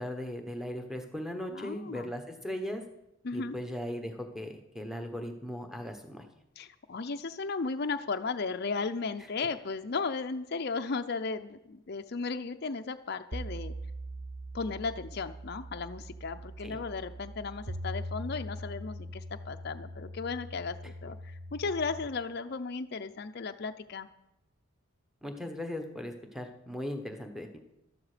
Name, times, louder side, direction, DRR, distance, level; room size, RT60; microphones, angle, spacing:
voice 1, 0.0-2.8 3.3-6.2 16.6-16.8 25.2-27.6, left 1 dB, ahead, 4 dB, 1.1 m, -38 dB
voice 2, 1.5-2.1 3.2-3.5 6.6-13.7 14.5-24.1, left 4 dB, 50° left, 7 dB, 0.5 m, -35 dB
sound 1, 13.3-22.0, right 1 dB, 30° right, 0.8 m, -41 dB
12.5 x 12.0 x 5.0 m, 0.89 s
head